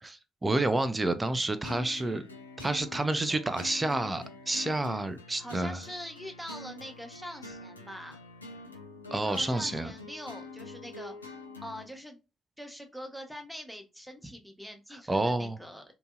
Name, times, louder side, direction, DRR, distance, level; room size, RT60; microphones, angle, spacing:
voice 1, 0.0-2.3 2.6-5.8 9.1-9.9 15.1-15.6, right 2 dB, 20° right, 0.4 m, -29 dB
sound 1, 1.6-11.9, left 3 dB, 90° left, 0.3 m, -45 dB
voice 2, 5.4-8.2 9.1-12.2 12.6-15.8, equal, ahead, 0.9 m, -44 dB
2.8 x 2.6 x 2.4 m
figure-of-eight pair, 40°, 0 cm